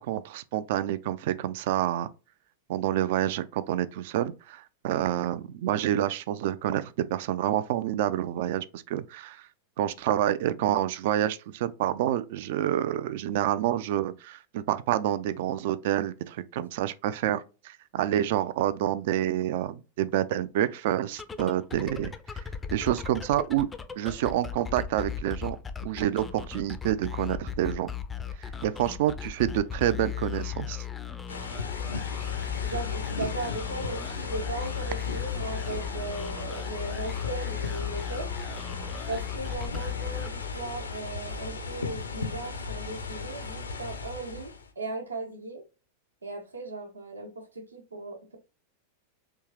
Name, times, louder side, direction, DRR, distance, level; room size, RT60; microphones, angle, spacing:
voice 1, 0.0-2.1 2.7-9.4 9.8-22.4 22.7-23.7 24.0-25.6 25.8-27.9 28.4-30.8, right 12 dB, 50° right, 0.4 m, -28 dB
sound 1, 21.1-40.8, left 9 dB, 15° left, 0.4 m, -37 dB
sound 2, 31.3-44.7, left 4 dB, 75° left, 0.6 m, -36 dB
voice 2, 32.6-38.3 39.1-45.6 46.2-48.4, right 3 dB, 80° right, 1.0 m, -37 dB
3.5 x 3.0 x 3.0 m
figure-of-eight pair, 90°, 0 cm